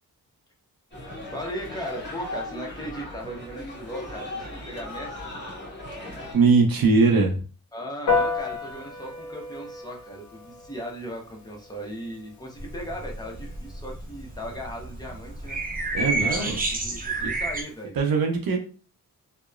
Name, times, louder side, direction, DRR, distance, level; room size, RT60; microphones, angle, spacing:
sound 1, 0.9-6.3, left 1 dB, 30° left, 1.4 m, -37 dB
voice 1, 1.3-5.3 7.7-15.6 16.2-16.6 16.8-18.0, equal, 10° left, 0 dB, 0.7 m, -37 dB
voice 2, 6.3-7.4 15.9-16.6 17.2-17.3 18.0-18.6, right 4 dB, 75° right, 2 dB, 0.6 m, -20 dB
Piano, 8.1-17.8, left 4 dB, 50° left, 0.6 m, -34 dB
sound 2, 12.6-17.6, right 2 dB, 25° right, 0.5 m, -30 dB
2.8 x 2.1 x 2.4 m, 0.37 s
cardioid pair, 65°, 36 cm